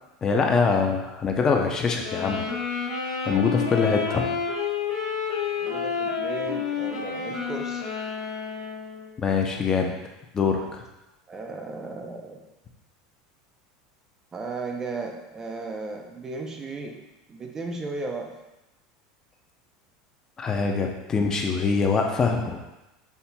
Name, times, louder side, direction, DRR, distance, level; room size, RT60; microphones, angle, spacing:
voice 1, 0.2-2.4 3.3-4.3 9.2-9.9 10.3-10.8 20.4-22.6, left 5 dB, 25° left, 2 dB, 0.6 m, -24 dB
sound 1, 2.0-9.1, left 6 dB, 90° left, 1.1 m, -29 dB
voice 2, 5.6-7.9 11.3-12.4 14.3-17.0 17.3-18.4, right 3 dB, 25° right, 2 dB, 0.6 m, -35 dB
5.7 x 4.2 x 2.2 m, 0.97 s
supercardioid pair, 120°, 2 cm